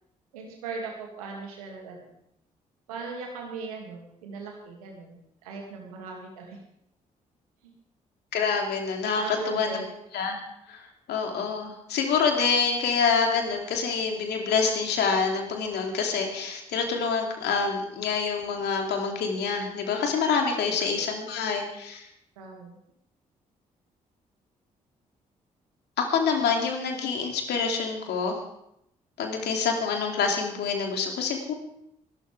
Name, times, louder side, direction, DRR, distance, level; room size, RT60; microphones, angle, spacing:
voice 1, 0.3-2.1 2.9-5.2 5.4-6.6 7.6-7.7 9.1-9.9 20.6-20.7 22.4-22.8, right 4 dB, 85° right, 0 dB, 2.6 m, -39 dB
voice 2, 8.3-9.8 10.1-10.4 10.7-10.8 11.1-22.0 26.0-28.4 29.2-31.5, left 5 dB, 65° left, 2 dB, 2.9 m, -26 dB
23.0 x 12.5 x 3.6 m, 0.77 s
hypercardioid pair, 40°, 18 cm